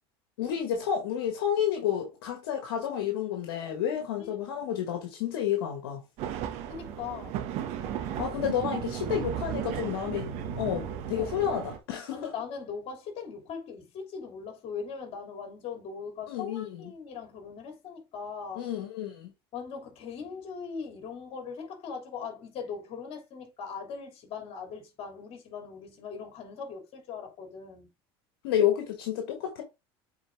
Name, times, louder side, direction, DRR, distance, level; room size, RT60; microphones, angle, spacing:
voice 1, 0.4-6.0 8.2-10.3 10.5-12.3 16.3-16.9 18.5-19.3 28.4-29.6, left 9 dB, 85° left, 1.5 m, -30 dB
sound 1, 6.2-11.8, right 9 dB, 65° right, 1.6 m, -35 dB
voice 2, 6.7-7.5 7.8-8.1 11.2-11.4 12.1-18.7 19.5-27.9, left 6 dB, 55° left, 3.0 m, -40 dB
8.1 x 4.4 x 3.6 m
hypercardioid pair, 85°, 12 cm